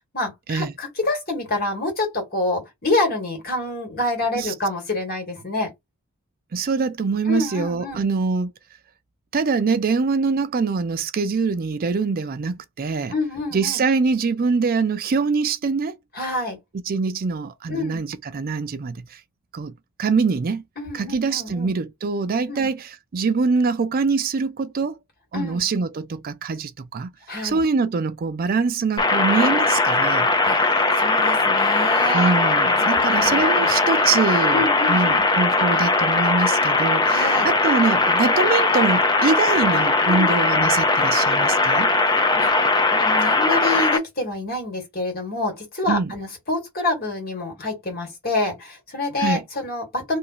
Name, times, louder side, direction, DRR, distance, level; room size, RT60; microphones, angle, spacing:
voice 1, 0.1-5.7 7.3-8.0 13.1-13.8 16.1-16.6 17.7-18.0 20.8-21.7 22.5-22.7 25.3-25.7 27.3-27.6 30.4-32.4 32.8-33.7 34.5-35.3 37.1-37.5 40.1-40.3 42.1-50.2, left 2 dB, 50° left, 1.8 m, -27 dB
voice 2, 6.5-8.5 9.3-13.1 13.5-16.0 16.9-19.2 19.5-19.7 20.0-20.6 20.9-25.0 25.3-27.1 27.4-30.3 32.1-41.9 45.9-46.1 49.2-49.4, right 4 dB, 45° right, 0.4 m, -24 dB
sound 1, 29.0-44.0, left 3 dB, 20° left, 0.6 m, -19 dB
2.9 x 2.6 x 3.8 m
head